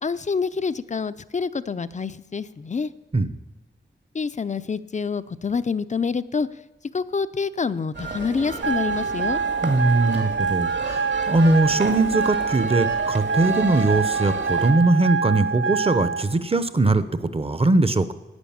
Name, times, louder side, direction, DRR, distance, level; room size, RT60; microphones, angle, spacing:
voice 1, 0.0-2.9 4.1-6.5 6.9-9.4, left 5 dB, 35° left, 15 dB, 0.5 m, -27 dB
sound 1, 7.9-14.7, right 3 dB, 60° right, 2.1 m, -33 dB
sound 2, 8.6-16.2, right 5 dB, 85° right, 1.3 m, -25 dB
voice 2, 9.6-18.1, right 2 dB, 30° right, 13 dB, 0.8 m, -21 dB
11.5 x 9.0 x 8.7 m, 1.1 s
wide cardioid pair, 95°, 21 cm